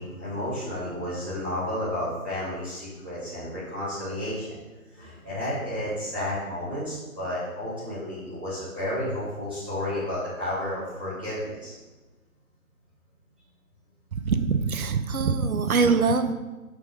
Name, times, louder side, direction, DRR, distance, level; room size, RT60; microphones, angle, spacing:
voice 1, 0.0-4.6 4.9-11.8, left 1 dB, 5° right, -13 dB, 1.1 m, -32 dB
voice 2, 14.2-16.3, right 5 dB, 75° right, 9 dB, 0.7 m, -23 dB
6.1 x 3.3 x 5.2 m, 1.2 s
figure-of-eight pair, 165°, 43 cm